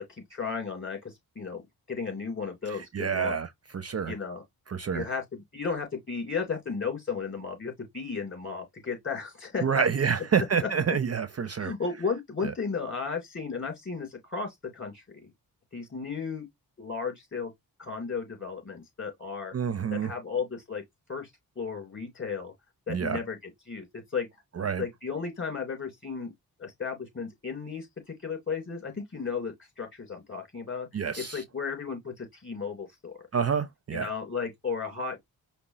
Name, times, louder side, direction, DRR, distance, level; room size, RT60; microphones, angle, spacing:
voice 1, 0.0-3.4 4.1-4.4 4.9-9.9 10.4-10.7 11.5-15.3 15.7-16.5 16.8-17.5 17.8-19.5 19.9-20.8 21.1-21.3 21.5-22.5 22.9-24.3 24.8-26.3 26.6-30.9 31.2-33.3 33.9-35.2, left 5 dB, 30° left, 3.3 m, -34 dB
voice 2, 2.7-3.5 3.7-4.1 4.7-5.1 9.6-11.7 19.5-20.1 22.9-23.2 24.6-24.8 30.9-31.4 33.3-34.1, right 6 dB, 40° right, 0.5 m, -28 dB
5.3 x 2.8 x 2.9 m
cardioid pair, 70°, 39 cm